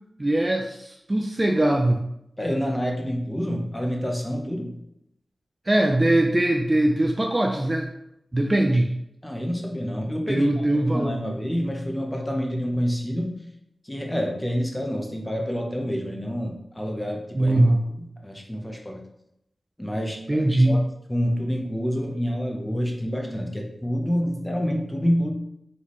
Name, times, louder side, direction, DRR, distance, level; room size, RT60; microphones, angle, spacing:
voice 1, 0.2-2.0 5.7-7.9 8.3-8.9 10.3-11.2 17.4-17.8 20.3-20.8, right 1 dB, 25° right, 2 dB, 0.4 m, -21 dB
voice 2, 2.4-4.8 9.2-10.6 10.9-13.3 13.8-17.6 18.0-19.0 19.8-20.8 21.1-25.3, equal, 10° left, 1 dB, 0.7 m, -28 dB
4.1 x 3.5 x 3.1 m, 0.79 s
wide cardioid pair, 105°, 0 cm